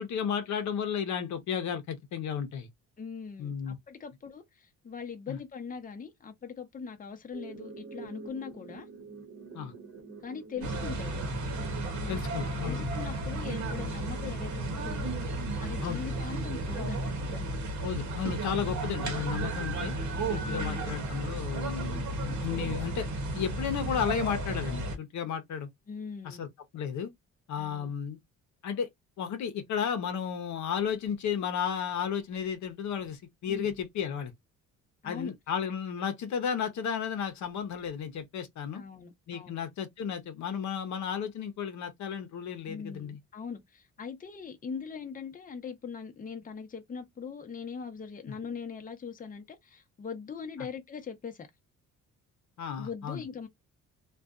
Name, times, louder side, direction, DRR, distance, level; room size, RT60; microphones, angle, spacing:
voice 1, 0.0-2.7 3.4-3.8 5.3-5.4 9.5-9.7 12.1-12.9 15.8-16.0 17.8-20.0 20.3-23.1 23.3-25.7 26.2-26.5 26.7-27.1 27.5-28.2 28.6-28.9 29.2-34.3 35.0-38.8 39.3-43.2 48.3-48.4 52.6-53.2, left 7 dB, 70° left, 0.7 m, -33 dB
voice 2, 3.0-8.9 10.2-11.2 11.9-15.1 15.6-17.6 20.4-21.0 22.5-22.8 25.9-26.4 27.6-27.9 33.5-33.8 35.0-35.3 38.7-39.6 42.7-51.5 52.8-53.5, left 6 dB, 30° left, 0.7 m, -41 dB
sound 1, 7.3-16.4, right 2 dB, 45° right, 1.0 m, -47 dB
sound 2, 10.6-25.0, right 2 dB, 70° right, 0.9 m, -33 dB
2.5 x 2.3 x 2.3 m
cardioid pair, 90°, 30 cm